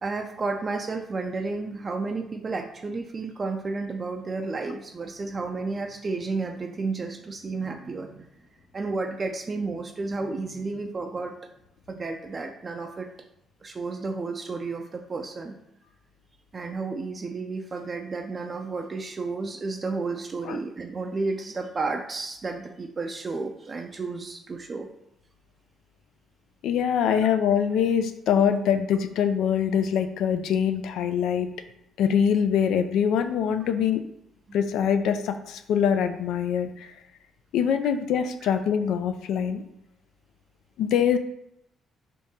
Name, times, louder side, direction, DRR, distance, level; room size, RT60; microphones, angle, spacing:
voice 1, 0.0-8.3 8.7-11.3 11.9-13.1 13.6-15.5 16.5-24.9 27.1-27.2 38.4-38.5, right 3 dB, 35° right, 3 dB, 0.4 m, -32 dB
voice 2, 26.6-31.5 32.0-34.0 34.5-36.9 37.5-39.6 40.8-41.2, left 8 dB, 85° left, 8 dB, 0.3 m, -24 dB
3.5 x 2.7 x 4.1 m, 0.79 s
cardioid pair, 90°, 0 cm